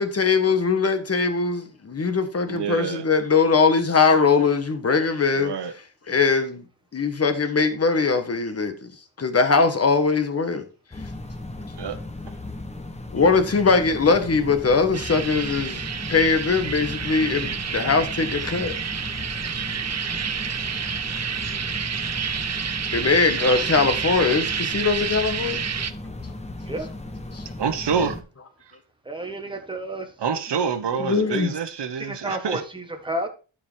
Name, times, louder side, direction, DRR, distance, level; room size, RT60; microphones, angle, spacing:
voice 1, 0.0-5.5 6.1-6.6 6.9-8.9 9.2-10.6 13.1-18.7 21.5-21.6 22.9-25.6 27.3-27.4 31.0-31.5, left 4 dB, 30° left, 1.4 m, -21 dB
voice 2, 2.5-3.0 5.3-5.7 11.8-12.0 12.3-12.4 27.6-28.2 30.2-32.6, right 6 dB, 55° right, 1.2 m, -27 dB
sound 1, 10.9-28.2, left 2 dB, 15° left, 1.0 m, -36 dB
sound 2, 14.9-25.9, right 7 dB, 35° right, 0.7 m, -29 dB
voice 3, 29.0-30.1 32.0-33.3, right 1 dB, 10° right, 1.6 m, -31 dB
12.5 x 5.0 x 4.6 m
wide cardioid pair, 145°, 49 cm